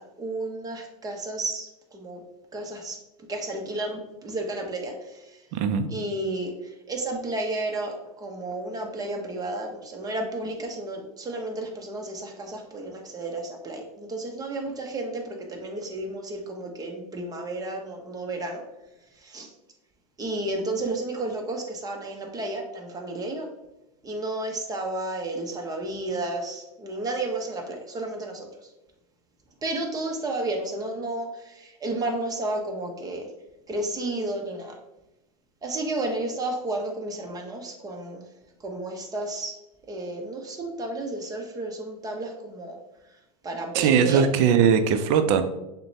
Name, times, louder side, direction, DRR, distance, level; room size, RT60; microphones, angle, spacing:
voice 1, 0.0-2.2 2.5-3.0 3.3-5.4 5.9-18.6 19.1-19.5 20.2-23.5 24.0-28.7 29.6-33.3 33.7-34.8 35.6-38.2 38.6-39.6 39.9-42.8 43.4-44.3, right 2 dB, 20° right, 2 dB, 0.8 m, -32 dB
voice 2, 5.5-5.9 43.7-45.4, right 7 dB, 50° right, 9 dB, 0.5 m, -20 dB
6.5 x 2.2 x 2.7 m, 0.95 s
hypercardioid pair, 100°, 20 cm